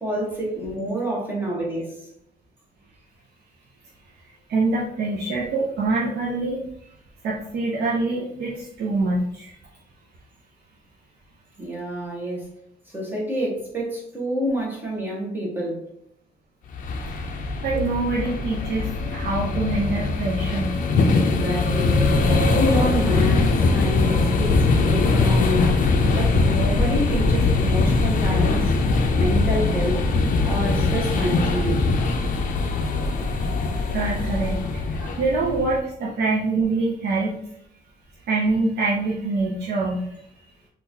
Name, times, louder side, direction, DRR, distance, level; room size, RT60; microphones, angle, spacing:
voice 1, 0.0-2.0 11.6-12.5 12.9-15.8 17.7-17.8 21.0-22.0 22.5-25.7 26.1-28.7 29.1-30.0 30.4-31.9, equal, 10° right, -4 dB, 0.9 m, -28 dB
voice 2, 4.5-6.6 7.2-9.5 17.6-20.8 33.9-37.4 38.3-40.1, right 3 dB, 75° right, -5 dB, 0.6 m, -25 dB
sound 1, 16.7-35.8, left 3 dB, 50° left, 0.4 m, -21 dB
3.7 x 2.4 x 2.7 m, 0.72 s
cardioid pair, 170°, 17 cm